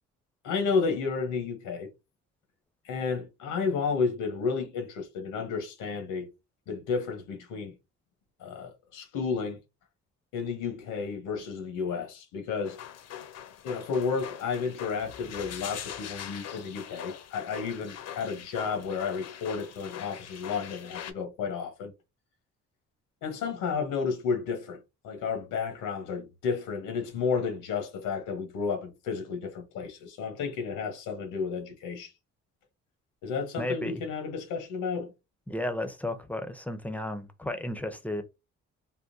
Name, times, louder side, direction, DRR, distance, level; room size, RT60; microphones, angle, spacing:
voice 1, 0.4-1.9 2.8-6.3 6.7-7.8 8.4-9.6 10.3-12.8 13.6-21.9 23.2-32.1 33.2-35.1, left 5 dB, 90° left, 1.0 m, -32 dB
sound 1, 12.6-21.1, left 9 dB, 55° left, 0.6 m, -42 dB
voice 2, 33.6-34.0 35.5-38.2, left 1 dB, 5° left, 0.5 m, -33 dB
3.6 x 2.2 x 2.6 m
cardioid pair, 90°, 30 cm